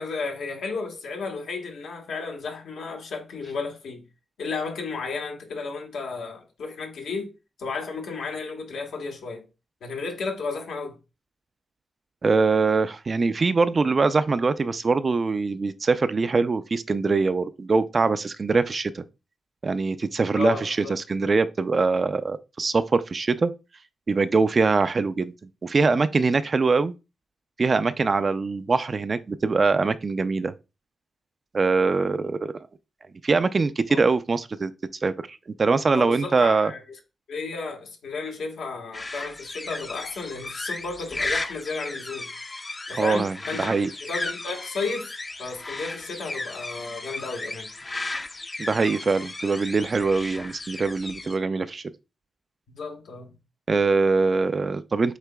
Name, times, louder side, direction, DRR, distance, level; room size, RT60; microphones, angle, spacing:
voice 1, 0.0-4.0 4.4-7.3 7.6-9.5 9.8-11.0 20.3-20.9 33.9-34.0 35.9-36.8 37.3-42.3 42.9-45.1 45.4-47.7 52.7-53.4, left 4 dB, 85° left, 1.3 m, -33 dB
voice 2, 12.2-19.0 19.6-23.5 24.1-25.3 25.6-26.9 27.6-30.5 31.5-32.5 33.2-34.7 35.0-36.7 43.0-43.9 48.6-51.8 53.7-55.2, right 4 dB, 40° right, 0.4 m, -23 dB
sound 1, 38.9-51.4, left 2 dB, 30° left, 0.5 m, -35 dB
8.0 x 2.9 x 2.2 m
cardioid pair, 75°, 0 cm